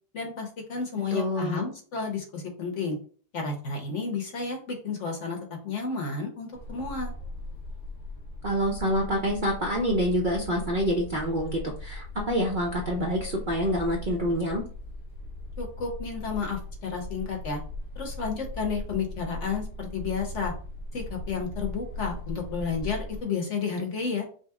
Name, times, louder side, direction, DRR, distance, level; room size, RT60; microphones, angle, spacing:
voice 1, 0.1-3.0 3.3-5.4 5.6-7.1 15.6-17.6 17.9-20.5 20.9-24.3, left 5 dB, 55° left, 2 dB, 1.1 m, -31 dB
voice 2, 1.1-1.7 8.4-14.6, equal, 50° right, -1 dB, 0.6 m, -27 dB
sound 1, 6.5-23.2, left 1 dB, 85° left, 1.4 m, -39 dB
5.5 x 2.0 x 3.6 m, 0.42 s
omnidirectional pair, 1.7 m